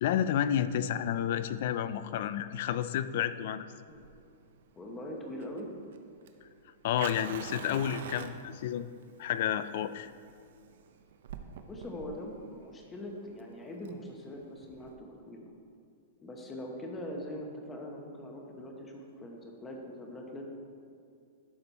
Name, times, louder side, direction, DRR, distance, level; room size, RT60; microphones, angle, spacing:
voice 1, 0.0-3.7 6.8-10.1, left 10 dB, 45° left, 13 dB, 0.3 m, -31 dB
Fire, 3.9-14.9, right 7 dB, 60° right, 0.6 m, -46 dB
voice 2, 4.8-5.7 11.7-15.5 16.2-20.4, left 1 dB, 10° left, 1 dB, 0.9 m, -42 dB
11.5 x 5.2 x 4.1 m, 2.4 s
supercardioid pair, 175°, 0 cm